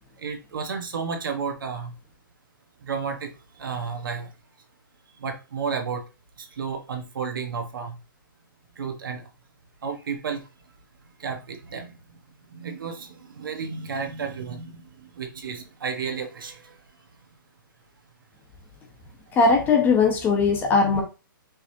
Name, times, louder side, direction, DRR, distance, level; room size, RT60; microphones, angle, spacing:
voice 1, 0.2-1.9 2.8-3.3 3.6-4.3 5.2-6.0 6.4-8.0 8.8-9.3 9.8-10.5 11.2-12.0 12.5-16.7, right 5 dB, 70° right, 1.3 m, -32 dB
voice 2, 19.3-21.0, left 4 dB, 15° left, 0.9 m, -19 dB
5.2 x 3.1 x 2.8 m
hypercardioid pair, 145°, 12 cm